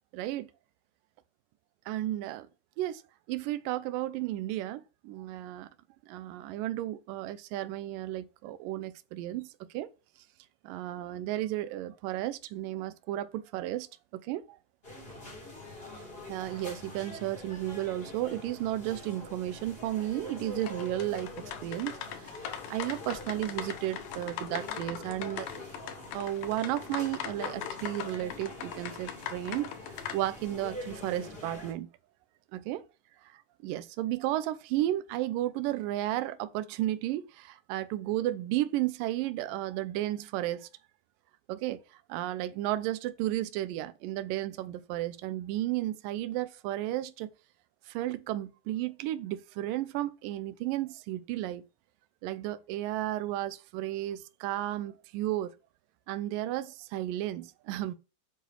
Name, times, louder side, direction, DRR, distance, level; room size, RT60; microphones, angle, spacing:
voice 1, 0.1-0.5 1.9-2.5 2.8-3.0 3.3-5.7 6.1-9.9 10.6-13.9 14.1-14.6 16.3-25.5 26.1-31.9 32.5-32.8 33.6-40.7 41.5-47.3 47.9-51.6 52.2-55.5 56.1-58.0, right 14 dB, 80° right, 2.3 m, -33 dB
sound 1, 14.8-31.7, left 1 dB, 15° left, 3.2 m, -45 dB
sound 2, 20.6-30.2, left 10 dB, 80° left, 2.6 m, -41 dB
8.2 x 6.1 x 6.3 m
omnidirectional pair, 4.0 m